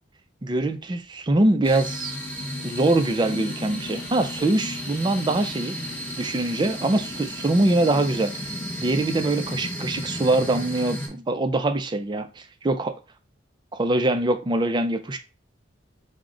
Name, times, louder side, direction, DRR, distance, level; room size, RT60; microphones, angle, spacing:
voice 1, 0.4-2.2 2.6-5.8 6.2-8.5 8.8-12.9 13.7-15.2, right 2 dB, 25° right, 0.4 m, -23 dB
sound 1, 1.6-11.1, equal, 10° left, 0.9 m, -33 dB
4.7 x 2.1 x 3.8 m
head